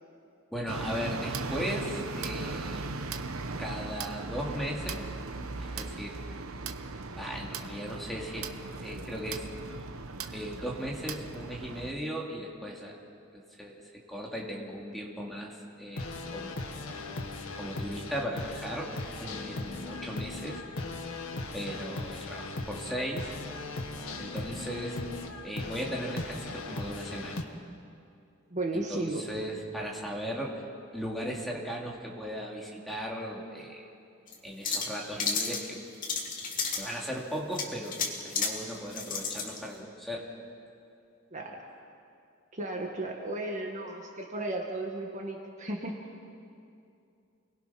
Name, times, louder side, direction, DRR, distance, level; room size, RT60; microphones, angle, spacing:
voice 1, 0.5-2.9 3.6-5.1 5.6-6.2 7.2-9.5 10.3-13.0 13.3-16.8 17.6-18.9 19.2-20.6 21.5-23.3 24.2-25.0 25.4-27.5 28.7-30.6 30.9-33.9 34.4-35.8 36.8-40.3, equal, ahead, -3 dB, 2.7 m, -37 dB
sound 1, 0.7-11.9, right 3 dB, 85° right, 1.0 m, -38 dB
sound 2, 16.0-27.4, left 2 dB, 85° left, 1.8 m, -38 dB
voice 2, 28.5-29.2 41.3-41.6 42.5-46.0, right 2 dB, 35° right, 1 dB, 1.8 m, -34 dB
sound 3, 34.3-34.4 34.6-35.6 36.0-36.9 37.5-38.5 38.9-39.6, left 5 dB, 40° left, 2.7 m, -32 dB
29.5 x 20.5 x 5.9 m, 2.5 s
head